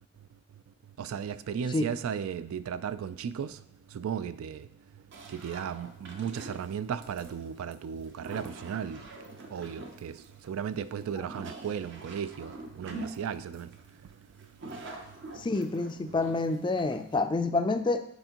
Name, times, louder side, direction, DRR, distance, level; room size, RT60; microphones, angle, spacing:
voice 1, 1.0-3.6 3.9-4.7 5.3-9.0 9.5-10.2 10.4-13.7, right 7 dB, 85° right, 0.3 m, -35 dB
sound 1, 5.1-17.2, right 2 dB, 55° right, 0.7 m, -45 dB
voice 2, 15.4-18.1, left 3 dB, 20° left, 0.3 m, -28 dB
8.0 x 4.4 x 2.9 m
head